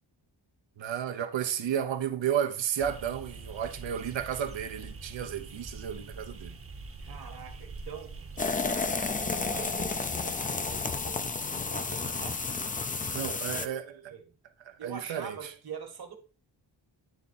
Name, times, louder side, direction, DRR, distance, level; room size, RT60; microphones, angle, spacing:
voice 1, 0.8-6.6 13.1-14.0 14.7-15.4, right 9 dB, 80° right, 0.9 m, -32 dB
sound 1, 2.8-10.0, right 3 dB, 30° right, 0.9 m, -44 dB
voice 2, 7.0-12.5 13.1-14.4 14.8-16.2, right 6 dB, 55° right, 1.4 m, -45 dB
sound 2, 8.4-13.7, left 4 dB, 20° left, 0.4 m, -31 dB
9.1 x 3.5 x 4.0 m
wide cardioid pair, 100°, 44 cm